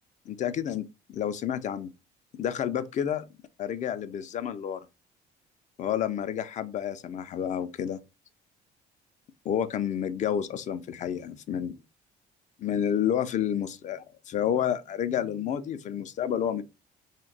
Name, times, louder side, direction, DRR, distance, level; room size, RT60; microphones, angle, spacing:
voice 1, 0.3-1.9 2.4-3.2 3.6-4.9 5.8-8.0 9.4-11.8 12.6-16.6, left 9 dB, 45° left, 0.4 m, -30 dB
2.6 x 2.2 x 3.8 m
cardioid pair, 110°, 17 cm